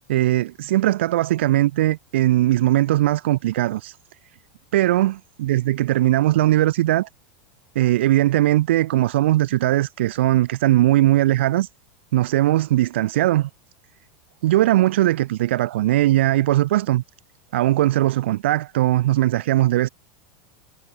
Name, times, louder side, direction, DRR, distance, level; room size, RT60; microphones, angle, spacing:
voice 1, 0.1-4.0 4.7-7.1 7.7-11.7 12.1-13.5 14.4-17.0 17.5-19.9, right 15 dB, 75° right, 6.7 m, -19 dB
supercardioid pair, 160°, 6 cm